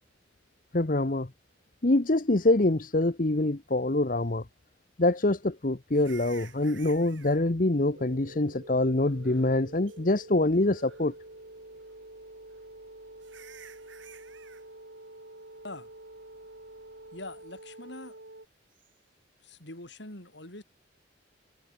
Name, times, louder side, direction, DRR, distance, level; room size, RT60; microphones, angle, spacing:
voice 1, 0.7-1.3 1.8-4.4 5.0-11.1, left 2 dB, 45° left, 1.0 m, -25 dB
sound 1, 5.9-7.4 9.0-9.6 9.9-10.0 10.6-11.2 12.5-12.6 13.2-14.7 18.7-18.9, right 8 dB, 75° right, 4.8 m, -52 dB
sound 2, 7.9-18.5, right 1 dB, 60° right, 2.8 m, -48 dB
voice 2, 17.1-18.2 19.4-20.6, left 2 dB, 65° left, 5.5 m, -43 dB
head